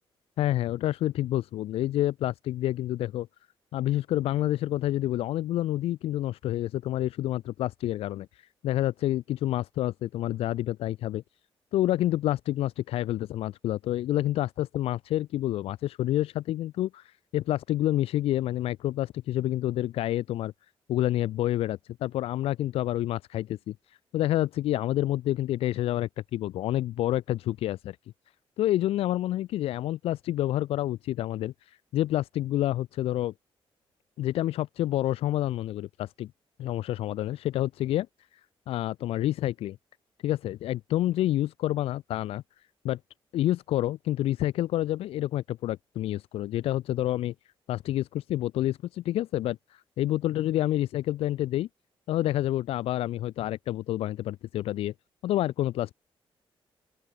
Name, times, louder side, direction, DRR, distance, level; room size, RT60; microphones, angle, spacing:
voice 1, 0.4-3.3 3.7-11.2 11.7-20.5 20.9-28.0 28.6-33.3 34.2-36.3 36.6-38.1 38.7-39.8 40.2-42.4 42.8-43.0 43.3-47.3 47.7-51.7 52.1-54.9 55.2-55.9, left 14 dB, 85° left, 0.4 m, -28 dB
open air
cardioid pair, 160°, 10 cm